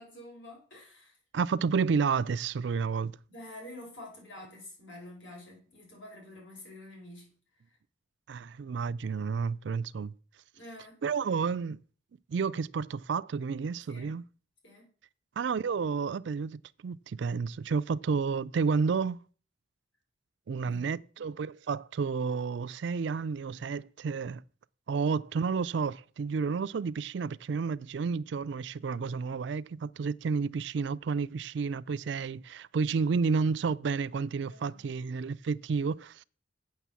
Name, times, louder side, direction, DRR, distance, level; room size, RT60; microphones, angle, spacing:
voice 1, 0.0-1.2 3.3-7.3 7.6-7.8 10.5-11.0 13.9-14.2 14.6-14.9 20.6-21.0 34.5-34.9, left 1 dB, 75° left, 5.5 m, -48 dB
voice 2, 1.3-3.1 8.3-10.1 11.0-11.8 12.3-14.2 15.4-19.2 20.5-24.4 24.9-36.2, right 5 dB, 65° right, 0.4 m, -31 dB
8.2 x 6.4 x 7.5 m
head